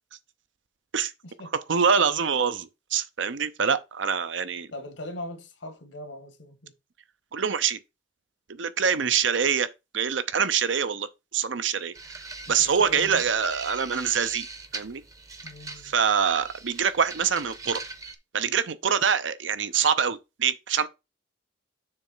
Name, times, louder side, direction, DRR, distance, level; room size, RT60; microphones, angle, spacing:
voice 1, 1.5-4.7 7.3-7.8 8.5-9.7 9.9-12.2 12.5-14.5 14.7-15.0 15.8-17.8 18.3-20.9, right 7 dB, 85° right, 0.7 m, -25 dB
voice 2, 4.7-6.7 9.0-9.2 12.5-13.2 15.4-15.9, left 1 dB, 90° left, 1.9 m, -40 dB
sound 1, 11.9-18.1, right 3 dB, 15° right, 0.6 m, -41 dB
6.8 x 3.3 x 5.6 m
head